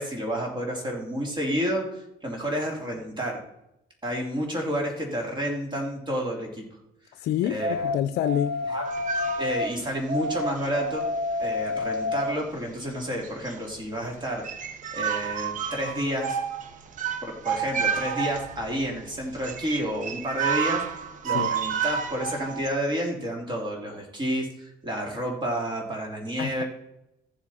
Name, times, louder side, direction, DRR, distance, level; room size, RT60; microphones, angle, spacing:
voice 1, 0.0-1.8 2.2-3.4 4.0-6.7 7.4-7.9 8.7-8.8 9.4-11.1 11.4-14.4 14.9-16.4 17.2-20.8 21.2-26.6, equal, 25° right, 2.9 m, -30 dB
voice 2, 7.1-8.6 21.3-21.5 26.4-26.6, left 11 dB, 70° left, 0.5 m, -27 dB
sound 1, 7.6-9.7 10.1-12.4, left 2 dB, 65° right, 1.3 m, -29 dB
sound 2, 8.8-10.0 10.5-11.0 11.4-11.5 12.5-12.7 13.0-13.8 14.1-14.2 14.4-22.7, right 7 dB, 50° right, 1.1 m, -31 dB
14.5 x 7.2 x 4.2 m
cardioid pair, 110°, 17 cm